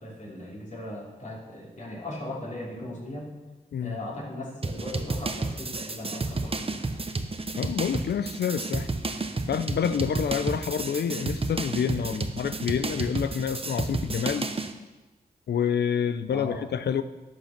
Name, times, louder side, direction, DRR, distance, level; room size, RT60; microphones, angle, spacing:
voice 1, 0.0-3.3 3.8-6.8 16.3-16.6, left 1 dB, 45° left, -3 dB, 3.3 m, -38 dB
sound 1, 4.6-14.7, right 3 dB, 35° right, 0.9 m, -31 dB
voice 2, 7.6-8.9 9.5-14.5 15.5-17.0, left 7 dB, 75° left, 13 dB, 0.6 m, -28 dB
11.0 x 6.4 x 5.9 m, 1.2 s
cardioid pair, 55°, 17 cm